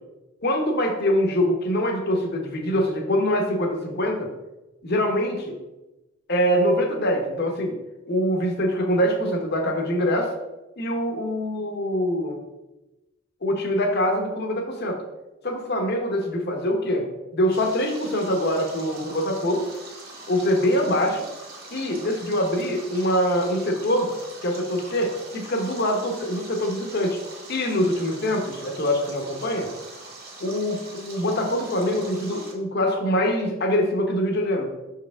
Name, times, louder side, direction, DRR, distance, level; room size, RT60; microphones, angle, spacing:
voice 1, 0.4-4.3 4.8-5.6 6.3-7.8 8.1-10.3 10.8-12.4 13.4-15.0 15.4-17.1 17.3-19.7 20.3-21.3 21.7-24.1 24.4-27.2 27.5-29.7 30.4-34.7, equal, 55° left, 3 dB, 1.0 m, -24 dB
Stream, 17.5-32.5, right 2 dB, 50° right, 1.7 m, -42 dB
5.8 x 4.7 x 3.5 m, 1.0 s
head